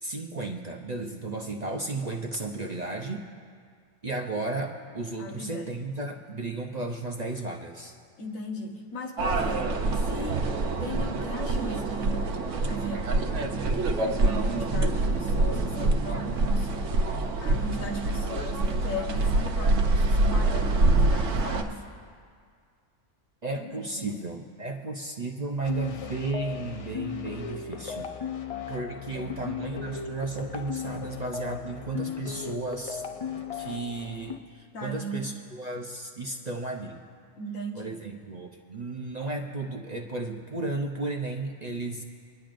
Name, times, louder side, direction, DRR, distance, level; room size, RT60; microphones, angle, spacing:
voice 1, 0.0-3.2 4.0-8.0 23.4-28.1 28.7-33.0 33.5-37.0 37.7-42.0, right 2 dB, 40° right, 1 dB, 0.7 m, -34 dB
voice 2, 5.2-5.8 8.2-10.5 10.8-12.3 12.6-13.4 14.0-16.9 17.4-21.8 23.6-24.2 29.0-29.6 34.7-35.3 37.4-38.0, equal, 80° left, 1 dB, 1.6 m, -37 dB
sound 1, 9.2-21.6, right 2 dB, 70° right, 1.1 m, -25 dB
sound 2, 25.6-34.4, left 6 dB, 60° left, 0.3 m, -36 dB
25.5 x 10.5 x 2.5 m, 2.1 s
omnidirectional pair, 1.4 m